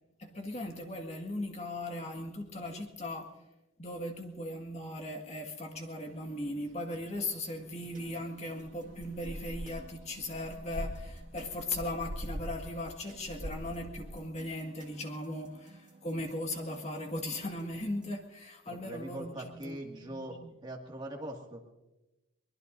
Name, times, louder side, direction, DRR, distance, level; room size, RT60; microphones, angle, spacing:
voice 1, 0.2-3.3 3.8-20.5, left 1 dB, 35° left, 2 dB, 1.9 m, -38 dB
sound 1, 6.0-12.8 13.1-14.1, equal, 80° right, 1.8 m, -43 dB
sound 2, 7.9-18.2, right 1 dB, 40° right, 2.0 m, -56 dB
voice 2, 18.7-21.6, right 1 dB, 25° right, 0 dB, 2.2 m, -42 dB
23.5 x 21.0 x 2.7 m, 1.0 s
head